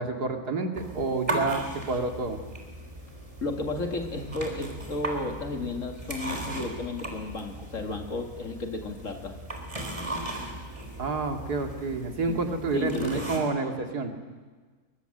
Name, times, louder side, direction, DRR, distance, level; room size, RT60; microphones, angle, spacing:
voice 1, 0.0-2.4 11.0-14.1, right 3 dB, 90° right, 4 dB, 2.8 m, -29 dB
sound 1, 0.8-13.4, right 1 dB, 20° right, 3.8 m, -37 dB
voice 2, 3.4-9.4 12.3-12.4 12.7-13.3, left 2 dB, 55° left, 5 dB, 2.6 m, -33 dB
22.5 x 22.5 x 7.9 m, 1.4 s
omnidirectional pair, 1.6 m